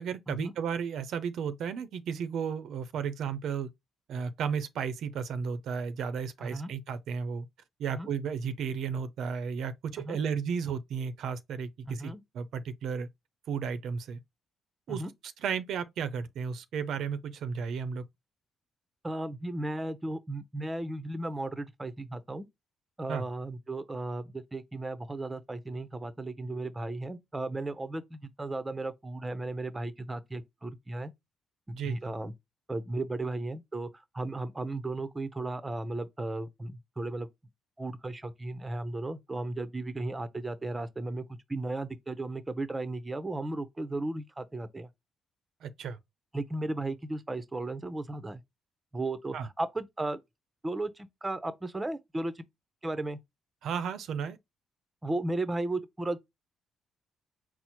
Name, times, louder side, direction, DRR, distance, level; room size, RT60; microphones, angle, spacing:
voice 1, 0.0-3.7 4.1-7.5 7.8-13.1 13.5-14.2 14.9-15.0 15.4-18.0 23.1-23.2 31.7-32.1 45.6-46.0 49.3-49.5 53.6-54.4, right 6 dB, 75° right, 0.5 m, -34 dB
voice 2, 6.4-6.7 7.9-8.1 10.0-10.2 11.9-12.2 14.9-15.1 19.0-22.5 23.0-31.1 31.8-32.3 32.7-33.9 34.1-37.3 37.8-44.9 46.3-48.4 48.9-50.2 50.6-52.5 52.8-53.2 55.0-56.2, right 2 dB, 20° right, 0.6 m, -35 dB
4.3 x 2.0 x 4.4 m
cardioid pair, 90°, 0 cm